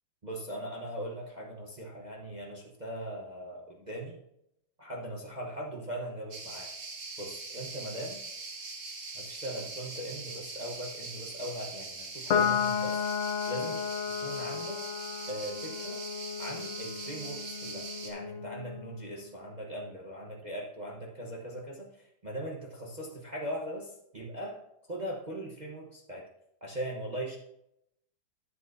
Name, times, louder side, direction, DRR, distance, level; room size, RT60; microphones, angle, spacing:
voice 1, 0.2-4.2 4.8-6.7 7.2-8.2 9.1-13.0 13.5-14.8 15.3-16.0 16.4-24.6 24.9-26.3 26.6-27.4, right 1 dB, 30° right, -2 dB, 1.0 m, -40 dB
sound 1, 6.3-18.1, right 3 dB, 45° right, 1.6 m, -42 dB
Piano, 12.3-19.0, left 7 dB, 75° left, 0.6 m, -33 dB
11.0 x 9.2 x 2.7 m, 0.80 s
omnidirectional pair, 2.1 m